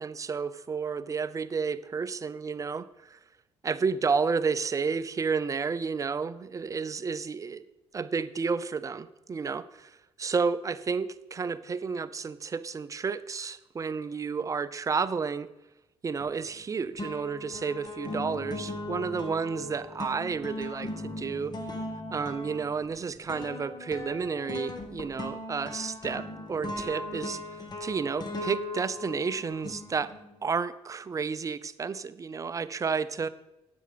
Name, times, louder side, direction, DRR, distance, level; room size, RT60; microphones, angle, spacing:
voice 1, 0.0-3.2 3.6-7.6 7.9-15.5 16.0-21.6 22.1-30.1 30.4-33.3, right 5 dB, 30° right, 14 dB, 0.5 m, -31 dB
sound 1, 16.2-16.7 17.0-30.4, left 1 dB, 40° left, 1.5 m, -38 dB
9.9 x 7.8 x 5.0 m, 0.95 s
cardioid pair, 100°, 11 cm